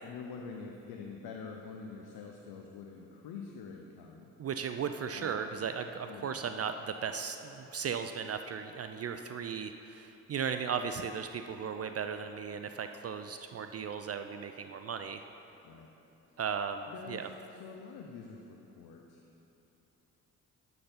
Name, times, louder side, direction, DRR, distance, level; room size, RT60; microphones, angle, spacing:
voice 1, 0.0-4.3 5.1-5.4 6.1-6.4 15.6-15.9 16.3-16.4 16.9-19.2, left 5 dB, 70° left, 1 dB, 0.8 m, -46 dB
voice 2, 4.4-15.2 16.4-17.3, right 6 dB, 40° right, 8 dB, 0.4 m, -36 dB
11.5 x 4.0 x 5.7 m, 3.0 s
hypercardioid pair, 45°, 39 cm